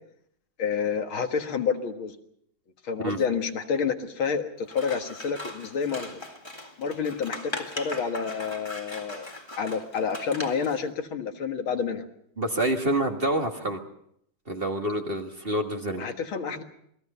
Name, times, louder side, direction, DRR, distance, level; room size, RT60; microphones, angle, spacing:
voice 1, 0.6-2.2 2.8-6.2 6.8-9.3 9.6-12.1 16.0-16.6, left 6 dB, 75° left, 5 dB, 2.5 m, -29 dB
Scissors, 4.7-10.8, left 1 dB, 15° left, 1.9 m, -39 dB
voice 2, 12.4-13.8 14.5-16.1, right 1 dB, 30° right, 3 dB, 1.8 m, -27 dB
28.5 x 20.0 x 5.6 m, 0.71 s
omnidirectional pair, 2.3 m